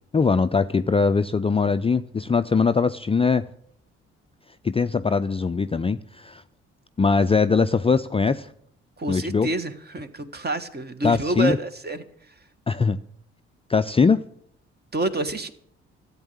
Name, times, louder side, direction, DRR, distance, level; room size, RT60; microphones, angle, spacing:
voice 1, 0.1-3.4 4.6-6.4 7.0-8.5 9.1-9.5 11.0-11.6 12.7-13.0 13.7-14.2, left 5 dB, 20° left, 11 dB, 0.5 m, -21 dB
voice 2, 9.0-12.0 14.9-15.5, right 2 dB, 30° right, 10 dB, 1.6 m, -28 dB
14.0 x 8.2 x 8.6 m, 0.67 s
hypercardioid pair, 45°, 32 cm